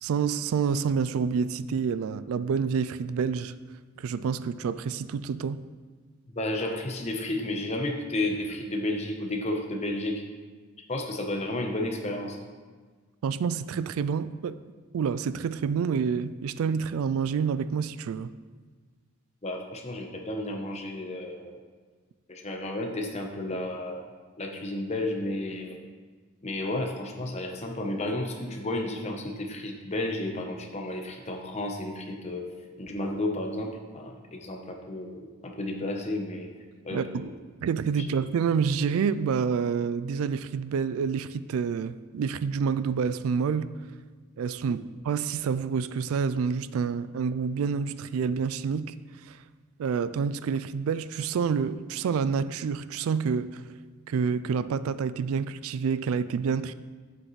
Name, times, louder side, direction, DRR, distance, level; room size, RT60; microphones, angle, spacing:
voice 1, 0.0-3.6 4.0-5.6 13.2-14.6 14.9-18.3 36.9-37.3 37.6-43.7 44.4-48.9 49.2-49.4 49.8-53.6 54.1-56.7, right 6 dB, 80° right, 0.3 m, -28 dB
voice 2, 6.3-10.2 10.9-12.4 19.4-21.6 22.3-24.1 24.4-25.8 26.4-32.5 32.8-36.5 36.8-37.3, left 1 dB, 30° left, 0.9 m, -32 dB
8.7 x 7.7 x 3.2 m
head